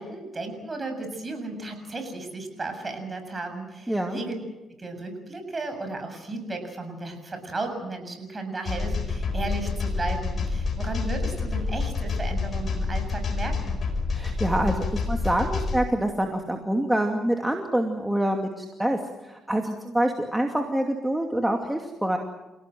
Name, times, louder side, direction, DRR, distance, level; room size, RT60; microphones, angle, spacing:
voice 1, 0.0-4.3 4.7-13.8, right 2 dB, 30° right, 6 dB, 7.3 m, -34 dB
voice 2, 3.9-4.2 14.1-22.2, right 1 dB, 10° right, 3 dB, 2.5 m, -26 dB
sound 1, 8.6-15.8, left 4 dB, 50° left, 5.3 m, -28 dB
29.0 x 17.5 x 7.8 m, 1.0 s
cardioid pair, 90°, 0 cm